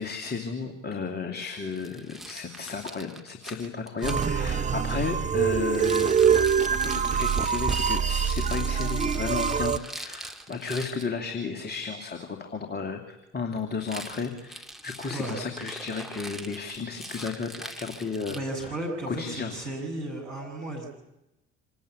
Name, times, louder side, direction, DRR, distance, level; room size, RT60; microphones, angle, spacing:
voice 1, 0.0-6.1 6.8-18.8 19.1-19.6, left 5 dB, 25° left, 4 dB, 2.9 m, -33 dB
Rattle, 1.7-4.3 5.7-11.1 13.8-18.8, right 1 dB, ahead, 2.3 m, -42 dB
sound 1, 4.0-9.8, right 7 dB, 20° right, 1.0 m, -24 dB
voice 2, 18.3-20.9, right 1 dB, 80° right, -3 dB, 6.9 m, -34 dB
26.5 x 19.5 x 8.5 m, 0.92 s
figure-of-eight pair, 55°, 36 cm